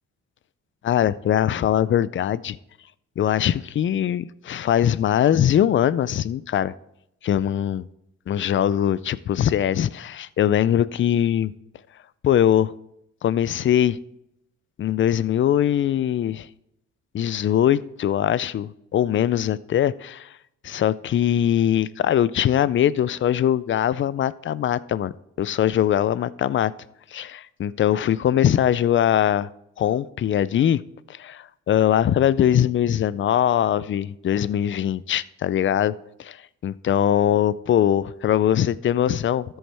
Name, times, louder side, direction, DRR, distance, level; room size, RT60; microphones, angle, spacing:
voice 1, 0.8-2.6 3.2-6.7 7.2-7.9 8.3-11.5 12.2-12.7 13.2-14.0 14.8-16.5 17.1-20.3 20.6-25.1 25.4-26.7 27.1-29.5 29.8-30.8 31.1-35.9 36.2-36.4 36.6-39.6, left 10 dB, 40° left, 18 dB, 0.4 m, -21 dB
13.0 x 7.9 x 3.4 m, 0.81 s
cardioid pair, 90°, 30 cm